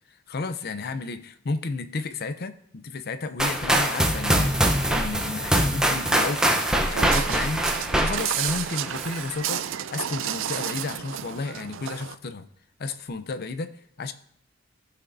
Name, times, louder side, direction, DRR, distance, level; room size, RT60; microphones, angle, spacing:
voice 1, 0.3-12.5 12.8-14.1, left 3 dB, 55° left, 11 dB, 0.6 m, -32 dB
sound 1, 3.4-9.2, right 1 dB, 5° right, 0.8 m, -23 dB
Walk footsteps, 6.3-12.1, right 10 dB, 75° right, 0.4 m, -32 dB
15.5 x 5.9 x 2.6 m, 0.69 s
head